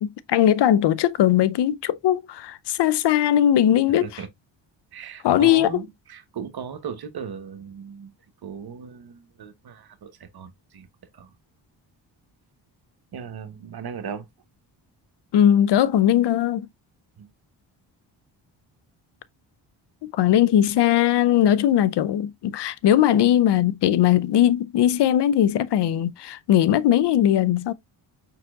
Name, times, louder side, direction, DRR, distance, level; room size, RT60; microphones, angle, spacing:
voice 1, 0.0-4.1 5.2-5.7 15.3-16.7 20.1-27.7, left 11 dB, 60° left, 0.6 m, -19 dB
voice 2, 4.9-8.1 8.4-10.9 11.1-11.3 13.1-14.3 17.2-17.3, right 7 dB, 50° right, 1.1 m, -37 dB
5.0 x 4.5 x 2.3 m
supercardioid pair, 65°, 48 cm